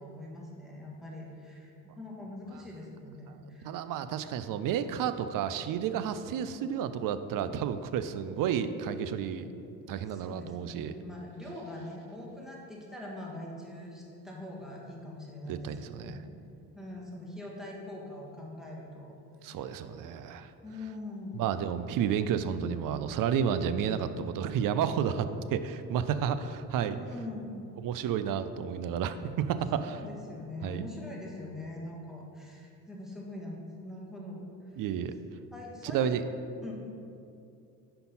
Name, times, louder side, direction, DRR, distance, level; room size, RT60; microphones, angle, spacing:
voice 1, 0.0-3.7 10.1-16.3 16.7-19.1 19.4-19.6 20.6-21.4 26.9-27.5 29.8-34.5 35.5-36.2 36.6-36.7, left 1 dB, ahead, -3 dB, 1.6 m, -43 dB
voice 2, 3.6-9.5 9.9-10.9 15.5-16.2 19.4-20.5 21.3-27.0 27.8-30.0 30.6-30.8 34.7-35.2 35.9-36.2, right 8 dB, 45° right, 11 dB, 0.5 m, -31 dB
5.3 x 4.5 x 5.6 m, 2.6 s
hypercardioid pair, 65°, 48 cm